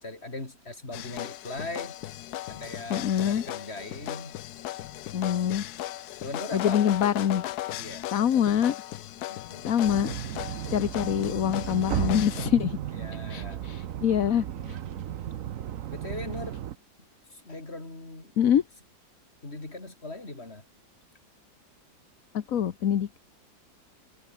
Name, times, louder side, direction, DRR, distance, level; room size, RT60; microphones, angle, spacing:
voice 1, 0.0-2.0 2.5-4.4 5.0-5.6 6.2-6.9 7.8-8.4 9.3-10.1 12.9-13.7 14.6-15.0 15.9-16.6 17.3-18.3 19.4-20.6, left 2 dB, 30° left, 4.6 m, -40 dB
sound 1, 0.9-12.5, left 14 dB, 70° left, 1.0 m, -37 dB
voice 2, 2.9-3.4 5.1-5.6 6.5-7.5 8.1-8.8 9.7-10.1 10.7-12.8 13.3-14.8 18.4-18.6 22.3-23.2, left 9 dB, 55° left, 1.2 m, -25 dB
sound 2, 9.8-16.8, right 11 dB, 60° right, 0.9 m, -34 dB
open air
omnidirectional pair, 2.1 m